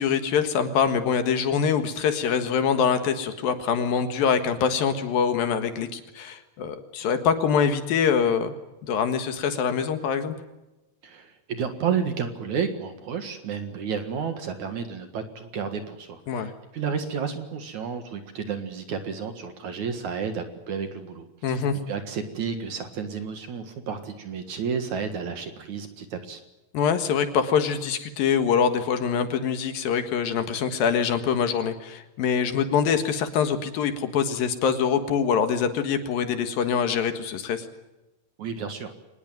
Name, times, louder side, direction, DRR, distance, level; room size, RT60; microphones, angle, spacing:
voice 1, 0.0-8.5 8.8-10.3 16.3-16.5 21.4-21.8 26.7-37.7, left 7 dB, 70° left, 8 dB, 3.2 m, -24 dB
voice 2, 11.0-26.4 38.4-38.9, right 6 dB, 55° right, 8 dB, 2.7 m, -31 dB
24.5 x 20.0 x 9.2 m, 1.0 s
omnidirectional pair, 4.6 m